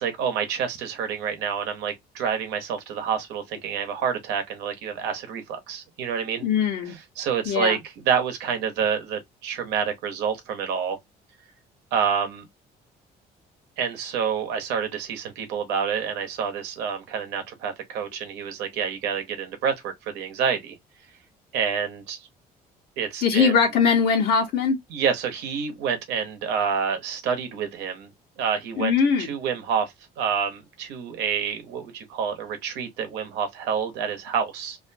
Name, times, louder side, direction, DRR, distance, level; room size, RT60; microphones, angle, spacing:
voice 1, 0.0-6.4 7.2-11.0 11.9-12.5 13.8-20.7 21.5-22.3 23.0-23.5 24.9-28.1 28.4-28.9 29.2-34.8, right 7 dB, 90° right, 0.8 m, -28 dB
voice 2, 6.4-7.0 7.5-7.8 23.2-24.8 28.8-29.3, left 6 dB, 70° left, 0.9 m, -21 dB
2.5 x 2.2 x 2.6 m
cardioid pair, 110°, 17 cm